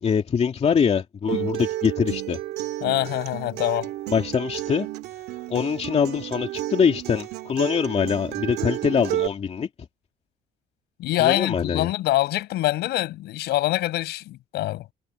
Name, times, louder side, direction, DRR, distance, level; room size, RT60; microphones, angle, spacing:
voice 1, 0.0-2.4 4.1-4.9 5.5-9.7 11.2-11.9, left 6 dB, 40° left, 2.5 m, -23 dB
Acoustic guitar, 1.3-9.3, right 15 dB, 80° right, 2.5 m, -31 dB
voice 2, 2.8-3.9 11.0-14.9, left 16 dB, 80° left, 7.5 m, -24 dB
cardioid pair, 110°, 17 cm